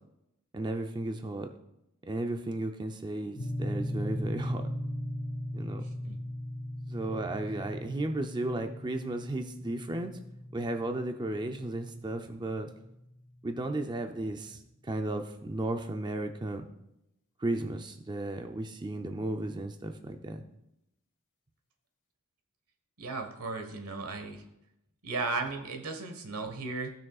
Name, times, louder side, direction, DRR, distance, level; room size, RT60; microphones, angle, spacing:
voice 1, 0.5-1.5 2.1-4.7 5.5-5.8 6.9-10.2 10.5-12.7 13.4-16.7 17.4-20.4, right 2 dB, 20° right, 5 dB, 0.5 m, -34 dB
sound 1, 3.4-13.5, equal, 55° left, 1.3 m, -38 dB
voice 2, 23.0-24.4 25.0-26.9, right 3 dB, 90° right, 5 dB, 1.3 m, -35 dB
15.0 x 6.1 x 2.4 m, 0.85 s
head